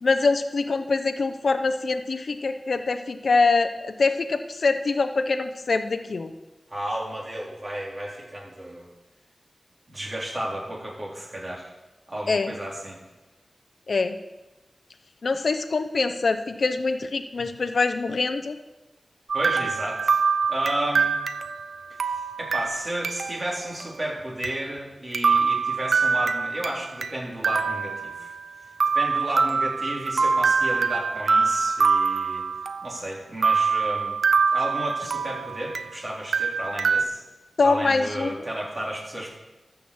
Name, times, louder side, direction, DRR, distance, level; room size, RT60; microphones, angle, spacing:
voice 1, 0.0-6.3 12.3-12.5 13.9-14.2 15.2-18.6 37.6-38.3, left 4 dB, 65° left, 8 dB, 0.6 m, -24 dB
voice 2, 6.7-8.9 9.9-11.7 12.1-13.0 19.3-20.2 20.5-21.2 22.0-28.3 28.9-32.4 32.8-34.2 34.5-37.2 37.6-39.3, right 1 dB, 35° right, -4 dB, 4.0 m, -32 dB
sound 1, 19.3-23.5 23.8-23.9 24.4-24.5 25.1-27.1 27.4-28.5 28.8-33.0 33.4-36.0 36.3-37.0, right 5 dB, 85° right, 0.5 m, -24 dB
13.5 x 6.1 x 7.2 m, 1.1 s
wide cardioid pair, 90°, 0 cm